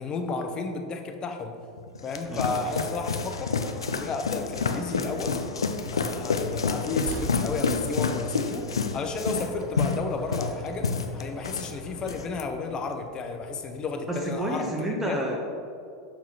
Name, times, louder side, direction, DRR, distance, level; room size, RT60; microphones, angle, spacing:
voice 1, 0.0-1.5 2.0-3.5 3.9-5.4 5.9-8.7 8.9-14.7 15.1-15.2, left 4 dB, 30° left, 5 dB, 0.7 m, -32 dB
sound 1, 1.8-11.7 12.0-12.4, left 5 dB, 85° left, 0.4 m, -29 dB
sound 2, 2.2-12.3, equal, 5° left, 1.5 m, -46 dB
Train, 5.8-14.4, right 4 dB, 50° right, 0.6 m, -45 dB
voice 2, 14.1-15.4, right 1 dB, 15° right, -1 dB, 0.8 m, -29 dB
6.9 x 5.8 x 2.9 m, 2.5 s
hypercardioid pair, 90°, 3 cm